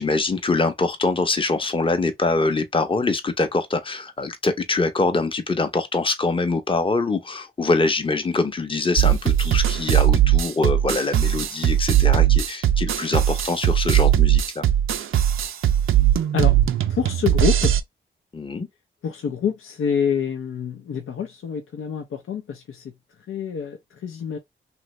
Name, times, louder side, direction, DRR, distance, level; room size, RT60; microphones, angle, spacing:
voice 1, 0.0-14.6 18.3-18.7, left 3 dB, 25° left, 0.7 m, -24 dB
sound 1, 9.0-17.8, right 11 dB, 75° right, 0.5 m, -19 dB
voice 2, 16.9-17.8 19.0-22.8 23.3-24.4, left 7 dB, 85° left, 0.7 m, -27 dB
2.9 x 2.5 x 3.1 m
cardioid pair, 65°, 21 cm